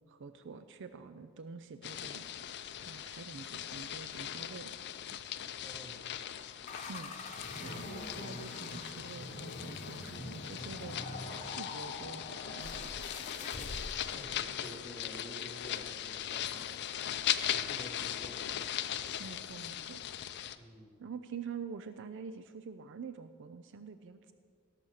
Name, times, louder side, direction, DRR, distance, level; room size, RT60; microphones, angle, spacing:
voice 1, 0.1-2.3 2.8-4.8 6.9-13.1 19.2-20.0 21.0-24.3, right 5 dB, 60° right, 10 dB, 0.5 m, -46 dB
sound 1, 1.8-20.6, left 10 dB, 50° left, 0.5 m, -39 dB
voice 2, 5.6-6.0 14.1-16.8 17.5-18.5 20.6-20.9, equal, 5° right, 0 dB, 1.7 m, -50 dB
sound 2, 6.7-14.2, left 2 dB, 35° left, 1.1 m, -44 dB
17.0 x 6.6 x 6.4 m, 2.1 s
head